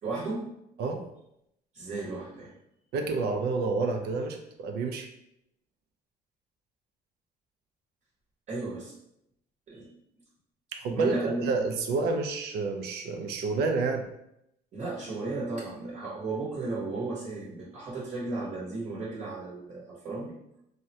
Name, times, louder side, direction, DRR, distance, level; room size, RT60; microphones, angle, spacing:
voice 1, 0.0-0.5 1.7-2.5 8.5-8.9 9.7-9.9 10.9-11.5 14.7-20.3, right 3 dB, 45° right, -6 dB, 0.9 m, -34 dB
voice 2, 2.9-5.1 10.7-14.1, right 3 dB, 70° right, 4 dB, 0.5 m, -29 dB
3.5 x 2.1 x 2.7 m, 0.79 s
cardioid pair, 110°, 17 cm